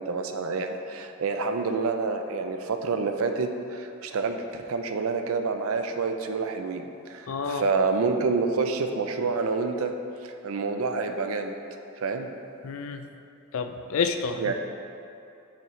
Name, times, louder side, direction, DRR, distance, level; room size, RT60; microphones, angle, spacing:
voice 1, 0.0-9.9 10.2-11.6 12.0-12.3 14.4-14.5, right 4 dB, 85° right, 6 dB, 0.5 m, -28 dB
voice 2, 7.3-7.6 12.6-13.0 13.5-14.5, left 5 dB, 75° left, 7 dB, 0.4 m, -29 dB
7.0 x 5.6 x 3.2 m, 2.7 s
head